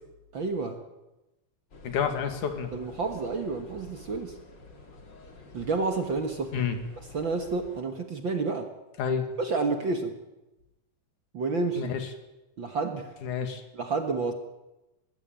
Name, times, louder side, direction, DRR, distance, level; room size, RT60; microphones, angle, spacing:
voice 1, 0.3-0.8 2.7-4.4 5.5-6.6 7.1-8.7 9.4-10.2 11.3-11.9 12.6-13.1 13.7-14.3, right 3 dB, 45° right, 6 dB, 1.8 m, -30 dB
sound 1, 1.7-7.8, left 3 dB, 35° left, 2.7 m, -49 dB
voice 2, 1.8-2.7 6.5-6.8 9.0-9.3 11.8-12.1 13.2-13.6, left 7 dB, 70° left, 7 dB, 3.3 m, -29 dB
21.5 x 16.0 x 9.1 m, 0.99 s
omnidirectional pair, 3.6 m